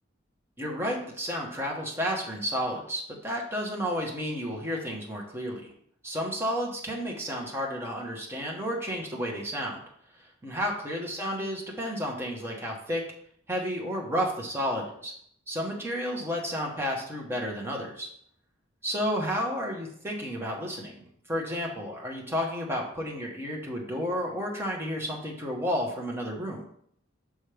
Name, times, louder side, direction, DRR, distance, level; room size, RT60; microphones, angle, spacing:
voice 1, 0.6-5.7 6.0-9.8 10.4-13.0 13.5-15.1 15.5-18.1 18.8-26.6, equal, 10° right, -1 dB, 1.2 m, -31 dB
6.2 x 4.9 x 3.4 m, 0.66 s
head